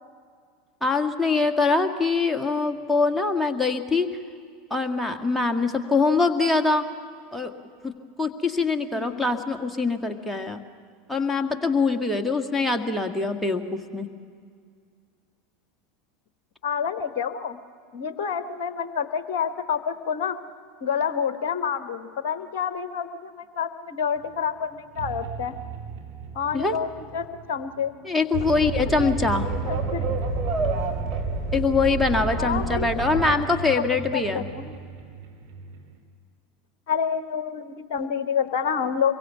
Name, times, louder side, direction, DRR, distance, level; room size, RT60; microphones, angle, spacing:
voice 1, 0.8-4.1 4.7-6.8 7.3-7.5 7.8-7.9 8.2-10.6 11.1-14.1 26.5-26.7 28.0-29.5 31.5-34.5, left 3 dB, 5° left, 4 dB, 1.7 m, -23 dB
voice 2, 8.9-9.3 16.6-17.6 17.9-20.4 20.8-25.5 26.3-27.9 28.4-28.7 29.0-29.1 29.7-30.1 32.4-33.4 34.1-34.8 36.9-39.1, left 7 dB, 55° left, 11 dB, 1.0 m, -28 dB
sound 1, 24.2-36.0, right 6 dB, 55° right, 3.3 m, -39 dB
sound 2, 28.3-33.3, right 3 dB, 35° right, 3.7 m, -28 dB
25.5 x 23.0 x 7.2 m, 2.1 s
figure-of-eight pair, 80°, 0 cm